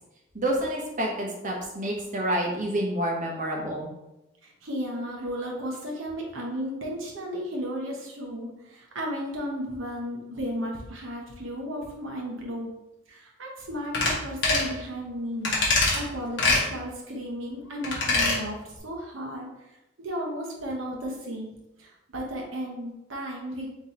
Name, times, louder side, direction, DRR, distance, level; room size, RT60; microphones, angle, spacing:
voice 1, 0.3-3.9, right 1 dB, 40° right, -1 dB, 1.0 m, -28 dB
voice 2, 4.4-12.7 13.1-15.5 15.9-18.6 18.8-19.5 20.0-21.5 21.8-23.7, equal, 80° right, -1 dB, 1.0 m, -34 dB
sound 1, 13.9-14.1 14.4-14.7 15.4-16.0 16.4-16.6 17.8-18.4 18.7-18.8, left 3 dB, 60° left, 1.3 m, -23 dB
4.0 x 3.0 x 4.2 m, 0.95 s
head